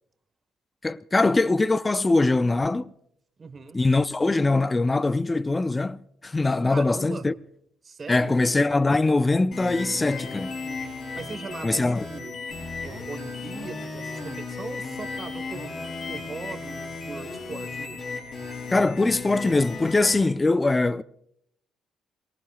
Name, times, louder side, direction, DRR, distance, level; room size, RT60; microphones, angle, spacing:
voice 1, 0.8-2.9 3.7-7.3 8.1-10.6 11.6-12.1 18.7-21.0, left 2 dB, 20° left, 0.5 m, -22 dB
voice 2, 3.4-3.8 6.7-7.3 7.8-8.3 10.6-12.4 12.8-15.7 16.1-18.0, right 4 dB, 35° right, 1.3 m, -40 dB
sound 1, 9.5-20.2, left 4 dB, 55° left, 4.8 m, -35 dB
27.0 x 18.5 x 2.4 m
cardioid pair, 80°, 0 cm